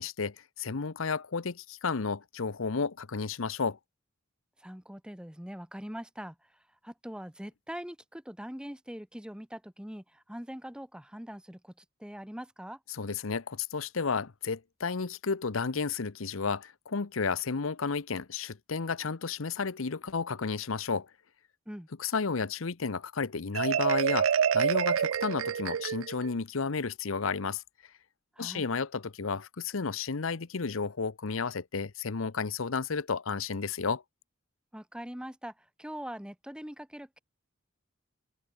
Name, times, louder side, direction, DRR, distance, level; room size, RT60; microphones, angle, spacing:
voice 1, 0.0-3.8 13.0-21.1 22.0-27.6 28.4-34.0, left 5 dB, 85° left, 0.9 m, -32 dB
voice 2, 4.6-12.8 21.7-21.9 28.3-28.7 34.7-37.2, equal, 5° right, 1.4 m, -43 dB
Marimba xylophone, 23.5-26.3, right 8 dB, 80° right, 0.4 m, -27 dB
head